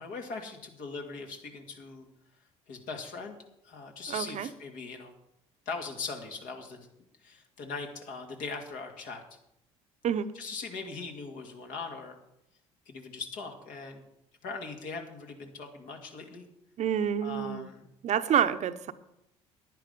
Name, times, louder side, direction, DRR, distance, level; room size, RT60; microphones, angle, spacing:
voice 1, 0.0-2.1 2.7-3.4 3.6-5.1 5.7-6.9 7.2-9.2 10.3-12.2 12.9-14.0 14.4-16.5 17.2-17.9, left 4 dB, 65° left, 3 dB, 2.2 m, -40 dB
voice 2, 4.1-4.5 10.0-10.3 16.8-17.7 18.0-18.9, right 9 dB, 50° right, 11 dB, 0.8 m, -28 dB
10.5 x 9.9 x 5.3 m, 0.81 s
hypercardioid pair, 70°, 15 cm